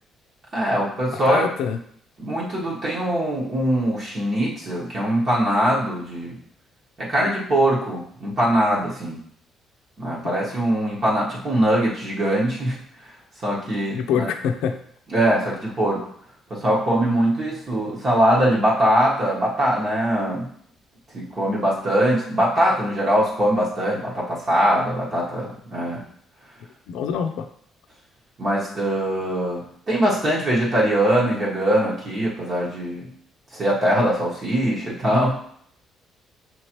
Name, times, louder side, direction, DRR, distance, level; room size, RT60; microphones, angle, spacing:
voice 1, 0.5-1.4 2.2-6.3 7.0-9.2 10.0-12.8 13.4-14.3 15.1-16.1 16.5-20.5 21.1-26.0 28.4-33.1 33.5-35.4, right 1 dB, 35° right, -5 dB, 1.2 m, -22 dB
voice 2, 1.1-1.8 13.9-14.8 26.9-27.5, left 7 dB, 90° left, 7 dB, 0.5 m, -25 dB
5.8 x 3.1 x 3.0 m, 0.64 s
cardioid pair, 135°, 0 cm